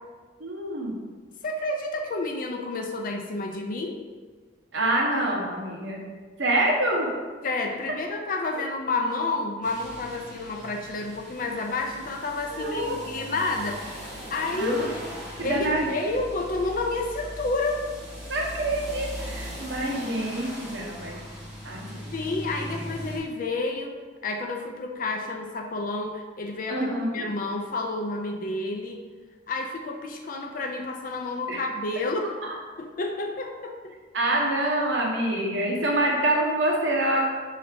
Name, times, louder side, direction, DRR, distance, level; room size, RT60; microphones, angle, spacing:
voice 1, 0.4-1.0 4.7-6.0 6.4-7.1 12.5-13.0 14.5-15.0 15.4-15.9 18.3-21.2 21.6-22.1 26.7-27.2 31.5-31.6 32.4-32.5 34.1-37.2, right 1 dB, 70° right, -2 dB, 1.0 m, -26 dB
voice 2, 1.4-4.0 7.4-14.9 15.4-17.9 22.1-24.0 24.2-29.0 29.5-32.3 32.8-34.0, left 2 dB, 45° left, 3 dB, 0.5 m, -30 dB
sound 1, 9.6-23.2, equal, 5° right, 1.3 m, -40 dB
5.6 x 2.8 x 3.4 m, 1.4 s
head